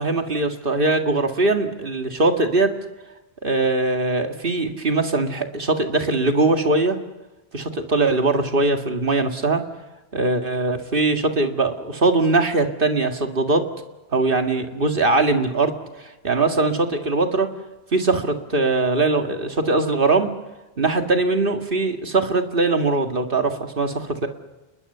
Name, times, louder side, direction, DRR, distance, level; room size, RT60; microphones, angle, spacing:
voice 1, 0.0-2.7 3.4-7.0 7.5-9.6 10.1-13.6 14.1-17.5 17.9-20.3 20.8-24.3, right 3 dB, 60° right, 5 dB, 2.3 m, -21 dB
28.5 x 21.0 x 6.9 m, 1.0 s
omnidirectional pair, 1.0 m